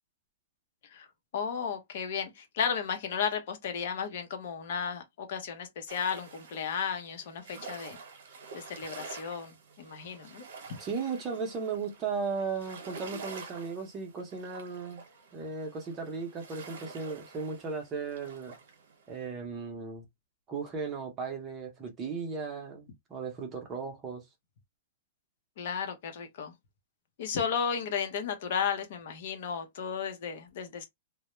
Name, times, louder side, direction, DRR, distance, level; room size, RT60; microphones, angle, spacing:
voice 1, 1.3-8.0 8.5-10.4 25.6-26.5 27.2-30.9, left 7 dB, 55° left, 0.7 m, -34 dB
sound 1, 5.9-19.2, right 4 dB, 60° right, 0.9 m, -48 dB
voice 2, 10.8-15.0 15.3-18.5 19.1-20.1 20.5-24.2, right 5 dB, 20° right, 0.7 m, -36 dB
2.2 x 2.0 x 2.9 m
hypercardioid pair, 160°, 0 cm